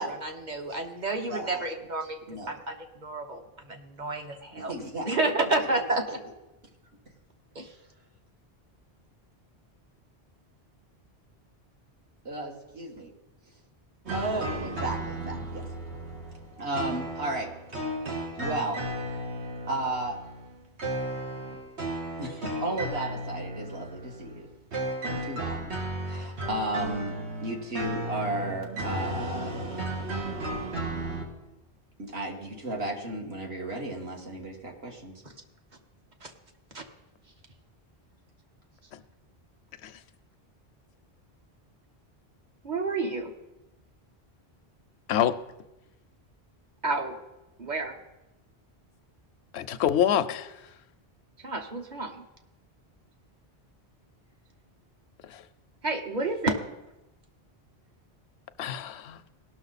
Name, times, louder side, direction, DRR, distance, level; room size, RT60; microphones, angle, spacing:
voice 1, 0.0-4.7 5.1-6.2 7.5-7.7 36.2-36.3 36.7-36.8 42.6-43.3 46.8-47.2 47.6-48.0 51.4-52.2 55.8-56.6, right 2 dB, 45° right, 1.2 m, -30 dB
voice 2, 1.3-1.7 2.3-2.5 4.6-5.1 6.1-6.2 12.3-13.1 14.1-15.6 16.6-17.5 18.4-18.8 19.7-20.2 22.2-24.5 25.0-25.7 26.1-27.2 27.4-29.6 32.0-35.1, right 1 dB, 65° right, 1.9 m, -34 dB
sound 1, 14.1-31.3, right 1 dB, 90° right, 1.6 m, -34 dB
voice 3, 49.5-50.5 55.2-55.4 58.6-59.2, left 10 dB, 80° left, 0.8 m, -26 dB
18.0 x 6.2 x 4.0 m
omnidirectional pair, 1.1 m